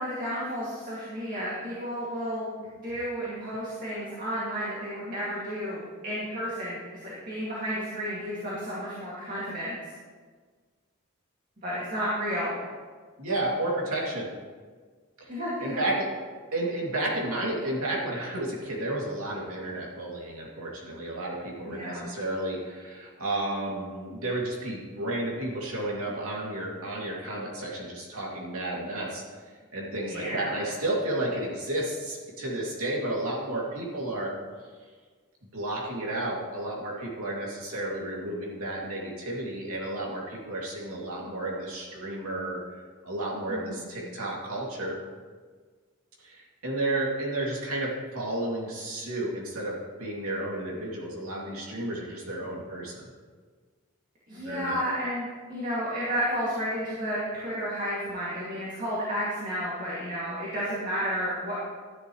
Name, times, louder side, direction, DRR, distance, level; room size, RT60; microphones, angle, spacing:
voice 1, 0.0-9.7 11.6-12.6 15.3-15.8 21.7-22.1 30.1-30.6 43.5-43.9 54.3-61.6, equal, 40° right, -8 dB, 2.4 m, -32 dB
voice 2, 13.2-14.3 15.2-16.1 16.5-29.2 29.7-34.3 35.5-45.0 46.2-53.1 54.4-54.8, right 1 dB, 85° right, -3 dB, 2.6 m, -32 dB
12.5 x 11.0 x 3.2 m, 1.5 s
head